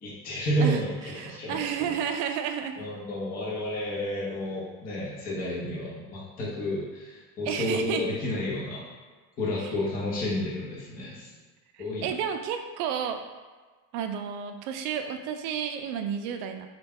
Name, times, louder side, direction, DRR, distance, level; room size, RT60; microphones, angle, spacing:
voice 1, 0.0-2.0 2.8-8.8 9.4-11.3 11.8-12.1, equal, 20° left, -6 dB, 0.5 m, -31 dB
voice 2, 1.1-2.8 7.5-8.0 11.7-13.2 13.9-16.7, right 8 dB, 75° right, 6 dB, 0.5 m, -31 dB
3.2 x 2.3 x 3.4 m, 1.4 s
cardioid pair, 170°, 47 cm